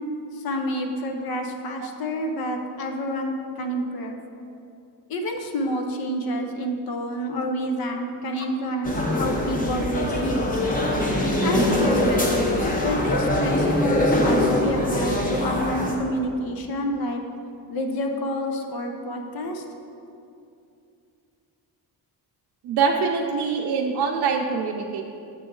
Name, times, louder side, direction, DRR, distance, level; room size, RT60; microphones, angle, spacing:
voice 1, 0.3-4.2 5.1-10.7 11.4-12.4 12.8-17.2 17.7-19.6, equal, 60° left, 4 dB, 0.8 m, -28 dB
sound 1, 8.8-15.9, left 1 dB, 20° left, 0.7 m, -23 dB
voice 2, 22.6-25.0, right 5 dB, 75° right, 0 dB, 0.6 m, -24 dB
6.7 x 6.0 x 3.7 m, 2.6 s
cardioid pair, 160°, 41 cm